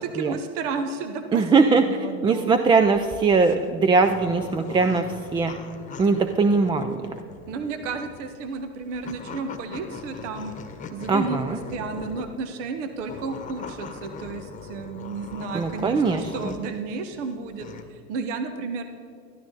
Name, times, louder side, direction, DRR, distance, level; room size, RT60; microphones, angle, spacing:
voice 1, 0.0-2.5 7.5-10.5 10.9-18.8, right 4 dB, 70° right, 8 dB, 1.1 m, -32 dB
voice 2, 1.3-1.9 2.2-5.5 6.0-7.0 11.1-11.6 15.5-16.5, right 4 dB, 15° right, 8 dB, 0.3 m, -21 dB
sound 1, 2.6-12.4 13.0-16.8 17.2-17.8, left 4 dB, 20° left, 1.1 m, -40 dB
12.5 x 12.0 x 4.0 m, 2.4 s
hypercardioid pair, 105°, 38 cm